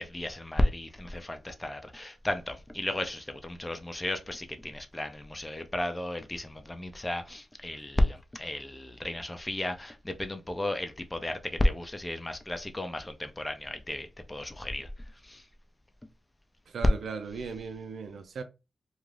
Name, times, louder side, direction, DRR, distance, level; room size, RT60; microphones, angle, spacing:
voice 1, 0.0-14.9 15.2-15.4, left 1 dB, 15° left, 0.5 m, -33 dB
voice 2, 16.7-18.4, right 5 dB, 75° right, 0.5 m, -37 dB
2.5 x 2.4 x 3.2 m
cardioid pair, 60°, 0 cm